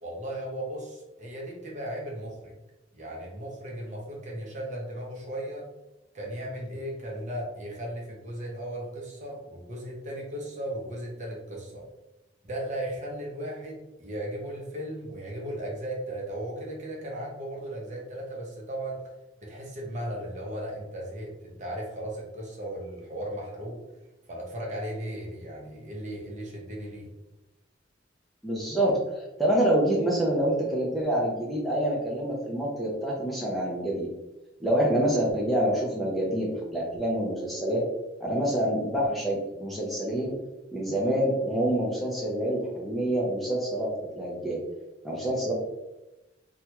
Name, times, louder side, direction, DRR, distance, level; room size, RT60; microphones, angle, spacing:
voice 1, 0.0-2.5 2.9-5.7 6.1-11.9 12.4-19.0 19.4-23.8 24.3-27.1, right 1 dB, 40° right, -2 dB, 0.8 m, -36 dB
voice 2, 28.4-34.1 34.6-37.8 38.2-40.4 40.7-44.6 45.0-45.5, right 1 dB, ahead, -5 dB, 0.5 m, -27 dB
3.2 x 2.3 x 2.9 m, 0.97 s
head